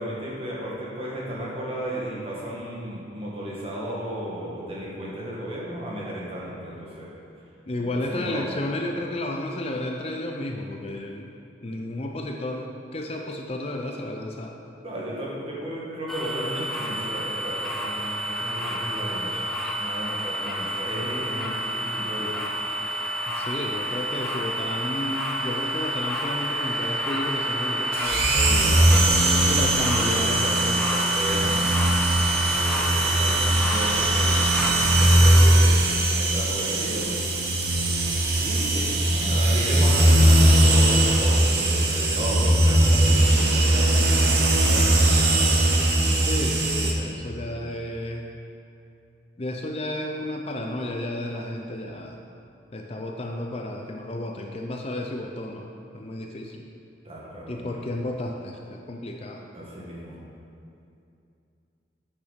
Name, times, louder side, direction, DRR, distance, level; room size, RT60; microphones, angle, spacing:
voice 1, 0.0-7.1 7.9-8.5 14.8-19.5 19.8-22.6 28.3-30.3 31.1-37.4 38.4-45.2 47.1-47.2 57.0-57.8 59.5-60.1, equal, 30° right, -5 dB, 1.8 m, -34 dB
voice 2, 7.7-11.3 11.6-14.5 23.3-28.4 29.5-31.1 46.2-48.3 49.4-52.2 52.7-55.7 55.9-56.6 57.5-59.4, left 1 dB, 35° left, 2 dB, 0.5 m, -32 dB
sound 1, 16.1-35.4, right 1 dB, ahead, 0.8 m, -28 dB
sound 2, 27.9-46.9, right 1 dB, 60° right, 1.0 m, -20 dB
8.6 x 6.6 x 5.2 m, 2.6 s
head